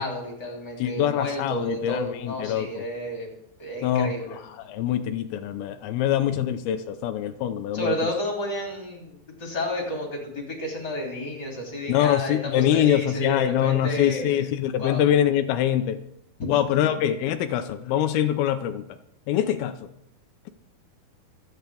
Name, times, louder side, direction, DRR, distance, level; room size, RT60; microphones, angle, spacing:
voice 1, 0.0-3.3 3.6-4.4 7.7-14.4 14.8-15.0 16.4-16.6, left 1 dB, 30° left, -1 dB, 3.3 m, -31 dB
voice 2, 0.8-2.8 3.8-7.9 11.9-16.0 16.5-19.0 19.3-19.9, left 11 dB, 85° left, 8 dB, 2.6 m, -24 dB
25.5 x 9.4 x 3.5 m, 0.78 s
omnidirectional pair, 4.3 m